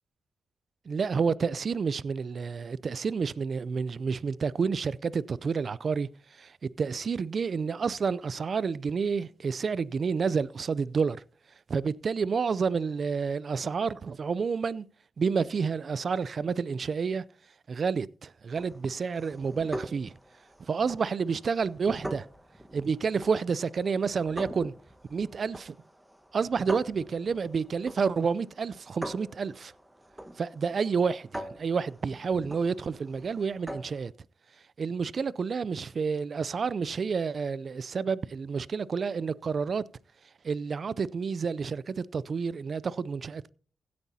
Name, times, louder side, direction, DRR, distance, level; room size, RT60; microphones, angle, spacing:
voice 1, 0.9-6.1 6.4-11.2 11.7-14.9 15.2-17.2 17.7-20.1 20.7-22.3 22.7-24.7 25.1-25.7 26.3-29.7 30.4-34.1 34.8-39.8 40.4-43.5, right 5 dB, 55° right, 0.4 m, -29 dB
sound 1, 18.5-34.1, right 1 dB, 10° right, 1.4 m, -44 dB
16.5 x 9.5 x 2.8 m
supercardioid pair, 50°, 0 cm